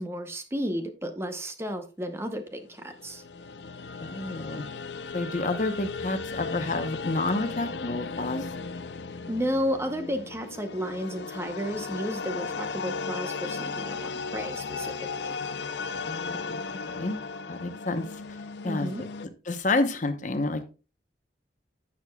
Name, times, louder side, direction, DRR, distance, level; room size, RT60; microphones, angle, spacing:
voice 1, 0.0-3.2 9.3-15.3 18.6-19.0, equal, 15° right, 0.8 m, -32 dB
sound 1, 2.8-19.3, left 4 dB, 75° left, 0.6 m, -36 dB
voice 2, 4.0-4.6 5.1-8.5 16.0-16.6 16.9-17.2 17.5-18.9 19.2-20.7, left 2 dB, 45° left, 0.9 m, -29 dB
11.0 x 7.4 x 2.3 m
head